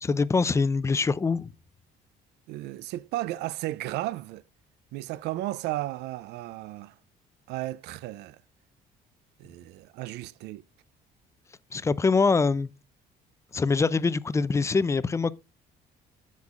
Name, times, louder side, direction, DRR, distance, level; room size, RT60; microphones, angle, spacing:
voice 1, 0.0-1.5 11.7-12.7 13.5-15.3, left 4 dB, 15° left, 0.4 m, -24 dB
voice 2, 2.5-4.4 4.9-6.9 7.5-8.4 9.4-10.6, right 16 dB, 85° right, 0.4 m, -34 dB
7.8 x 7.3 x 2.4 m
cardioid pair, 110°, 17 cm